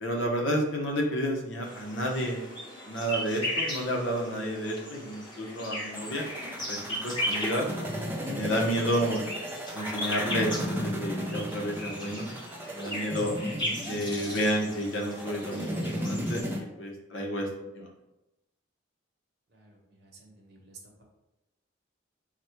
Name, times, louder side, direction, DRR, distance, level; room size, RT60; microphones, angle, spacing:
voice 1, 0.0-2.4 2.9-6.2 6.7-6.8 7.0-7.7 8.3-9.3 9.7-12.3 12.7-13.3 13.9-17.5 17.8-17.9, equal, 65° left, 0 dB, 0.8 m, -30 dB
sound 1, 1.6-16.4, equal, 20° left, 1.1 m, -37 dB
sound 2, 5.9-16.6, equal, 10° right, 0.5 m, -35 dB
voice 2, 19.5-21.0, right 3 dB, 55° right, -1 dB, 1.0 m, -53 dB
4.0 x 2.2 x 4.4 m, 0.97 s
head